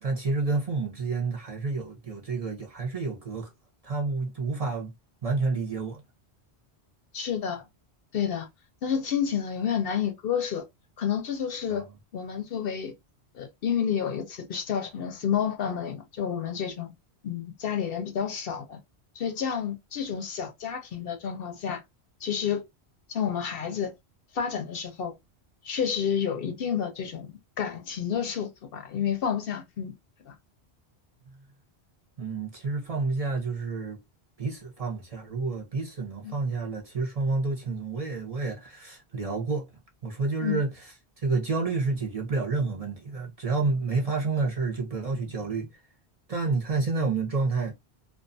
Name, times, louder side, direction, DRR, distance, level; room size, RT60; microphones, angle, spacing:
voice 1, 0.0-3.5 3.8-4.9 5.2-6.0 11.7-11.8 32.2-34.0 34.4-39.7 40.0-40.7 41.2-45.7 46.3-47.7, right 3 dB, 40° right, 0.7 m, -29 dB
voice 2, 7.1-7.6 8.1-8.5 8.8-10.7 11.0-11.9 12.1-12.9 13.3-16.9 17.2-18.8 19.2-21.8 22.2-22.7 23.1-23.9 24.3-25.1 25.6-29.9 30.3-30.4 36.2-36.3 40.4-40.6, left 8 dB, 65° left, 0.7 m, -30 dB
2.4 x 2.3 x 2.5 m
omnidirectional pair, 1.1 m